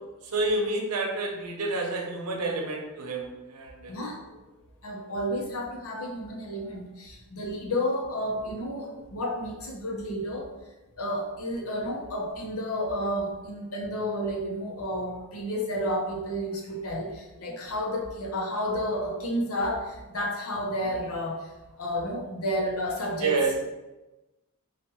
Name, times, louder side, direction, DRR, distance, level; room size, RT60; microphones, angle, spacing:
voice 1, 0.3-4.0 23.2-23.5, right 2 dB, 90° right, 0 dB, 0.8 m, -29 dB
voice 2, 3.9-4.4 4.8-10.5 11.0-21.5 21.8-23.4, equal, 70° left, 0 dB, 0.8 m, -31 dB
4.6 x 2.4 x 3.0 m, 1.1 s
head